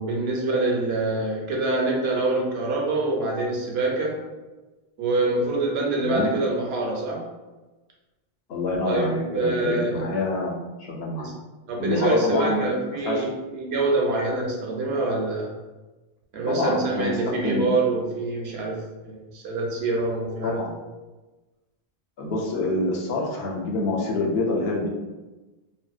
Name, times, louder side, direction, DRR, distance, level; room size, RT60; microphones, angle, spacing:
voice 1, 0.0-4.2 5.0-7.3 8.8-9.0 9.3-10.1 11.2-11.3 11.7-15.5 16.3-20.6, right 2 dB, 85° right, -1 dB, 0.9 m, -25 dB
voice 2, 6.0-6.3 8.5-10.5 10.8-11.3 11.8-13.3 16.5-17.7 20.4-20.7 22.2-24.9, left 2 dB, 75° left, -1 dB, 0.8 m, -26 dB
2.6 x 2.0 x 2.3 m, 1.2 s
omnidirectional pair, 1.0 m